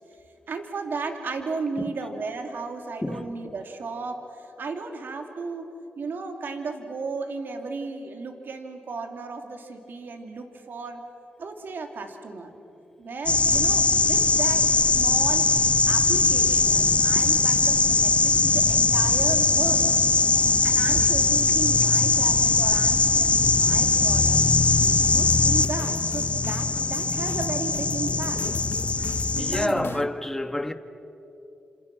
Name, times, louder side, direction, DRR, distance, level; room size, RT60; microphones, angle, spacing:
voice 1, 0.5-11.0 11.4-12.5 13.0-15.5 15.9-19.9 20.6-24.4 25.0-28.4 29.3-30.1, right 4 dB, 65° right, 2.9 m, -35 dB
voice 2, 3.0-3.4 29.4-30.7, left 1 dB, 10° left, 1.5 m, -28 dB
sound 1, 13.3-29.7, left 3 dB, 30° left, 0.8 m, -21 dB
sound 2, 24.8-30.1, left 7 dB, 70° left, 0.9 m, -39 dB
29.5 x 27.5 x 6.1 m
cardioid pair, 65°, 4 cm